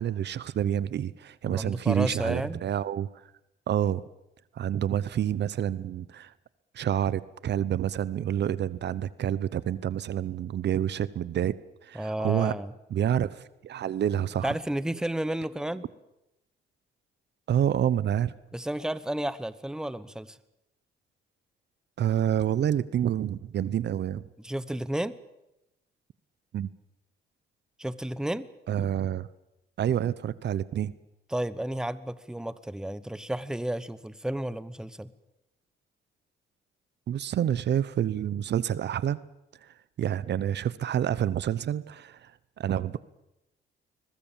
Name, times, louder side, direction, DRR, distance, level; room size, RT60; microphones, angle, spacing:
voice 1, 0.0-3.1 3.7-4.0 4.6-6.3 6.7-11.5 11.8-12.5 12.9-14.5 17.5-18.3 22.0-24.2 26.5-26.7 28.7-29.3 29.8-30.9 37.1-39.2 40.0-42.3 42.6-43.0, right 10 dB, 60° right, 18 dB, 0.9 m, -28 dB
voice 2, 1.4-2.6 11.9-12.7 14.4-15.9 18.5-20.4 24.4-25.2 27.8-28.5 31.3-35.1, right 1 dB, 5° right, 16 dB, 1.1 m, -32 dB
21.5 x 21.0 x 7.4 m, 0.90 s
cardioid pair, 90°, 20 cm